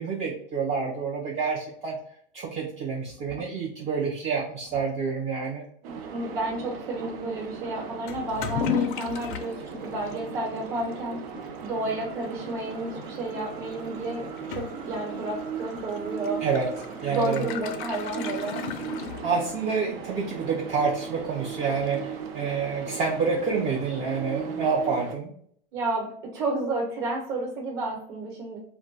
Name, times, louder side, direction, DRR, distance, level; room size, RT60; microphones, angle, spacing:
voice 1, 0.0-2.0 2.3-5.6 16.4-16.7 17.0-17.4 19.2-25.3, right 5 dB, 25° right, -1 dB, 0.4 m, -28 dB
voice 2, 5.8-9.5 9.8-11.2 11.6-16.4 17.1-18.6 25.7-28.6, right 2 dB, 40° right, -2 dB, 1.0 m, -31 dB
sound 1, 5.8-25.1, right 7 dB, 75° right, 0.5 m, -38 dB
Toilet flush / Liquid, 8.1-19.7, left 7 dB, 60° left, 0.4 m, -36 dB
2.3 x 2.1 x 3.8 m, 0.64 s
hypercardioid pair, 115°, 30 cm